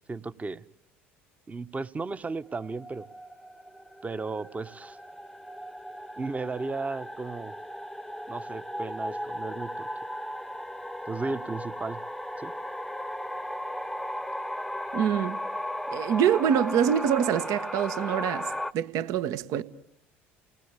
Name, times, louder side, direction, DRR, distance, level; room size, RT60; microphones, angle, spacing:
voice 1, 0.1-0.6 1.5-3.1 4.0-5.0 6.2-7.5 8.3-9.9 11.1-12.0 12.4-12.5, right 3 dB, 20° right, 1.1 m, -34 dB
sound 1, 2.4-18.7, equal, ahead, 1.0 m, -36 dB
voice 2, 14.9-15.4 15.9-19.6, right 9 dB, 60° right, 1.3 m, -25 dB
30.0 x 19.5 x 8.2 m
hypercardioid pair, 70°, 7 cm